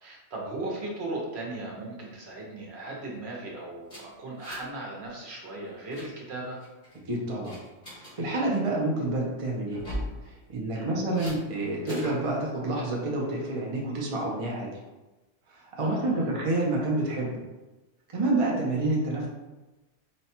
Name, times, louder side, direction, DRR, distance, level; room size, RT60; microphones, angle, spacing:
voice 1, 0.0-6.6 10.7-10.9 15.8-16.3, right 2 dB, 60° right, -2 dB, 1.1 m, -37 dB
sound 1, 3.9-4.8 5.0-5.3 5.6-6.1 6.6-7.0 7.4-8.1 9.7-10.1 11.1-11.4 11.9-12.2, equal, 35° left, 1.7 m, -38 dB
voice 2, 7.1-7.5 7.9-9.8 10.2-14.7 15.5-17.4 18.1-19.3, right 2 dB, 35° right, -2 dB, 0.7 m, -28 dB
4.0 x 2.3 x 4.3 m, 1.1 s
omnidirectional pair, 1.2 m